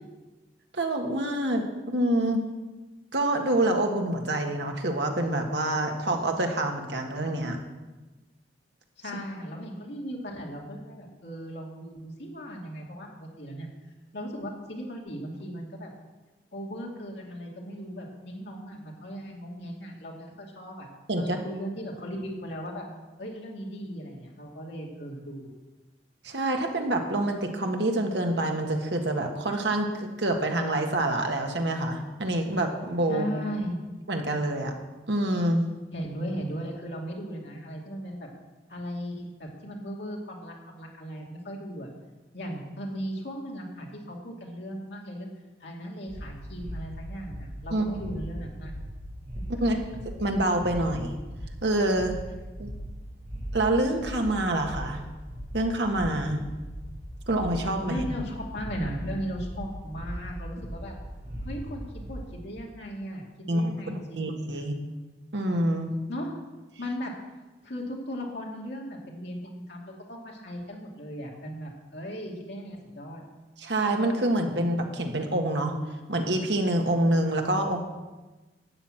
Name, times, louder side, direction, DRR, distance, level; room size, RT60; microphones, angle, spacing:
voice 1, 0.7-2.4 3.1-7.6 21.1-21.4 26.2-33.3 34.1-34.7 35.1-35.6 47.7-47.8 49.5-49.8 50.0-51.2 51.6-52.2 52.6-52.7 53.5-55.0 55.5-56.4 57.3-58.0 63.5-64.8 65.3-65.9 73.6-75.8 76.1-77.8, right 1 dB, 75° right, 3 dB, 1.6 m, -26 dB
voice 2, 9.0-13.7 14.1-15.9 16.5-20.9 21.2-22.9 23.2-25.5 33.1-33.8 35.9-38.3 38.7-41.9 42.3-45.3 45.6-48.7 57.8-60.9 61.4-63.2 63.5-64.4 66.1-66.3 66.8-67.2 67.6-73.2, equal, 70° left, -2 dB, 2.3 m, -37 dB
sound 1, 46.1-62.3, equal, 40° right, 4.1 m, -39 dB
12.5 x 6.1 x 8.8 m, 1.2 s
head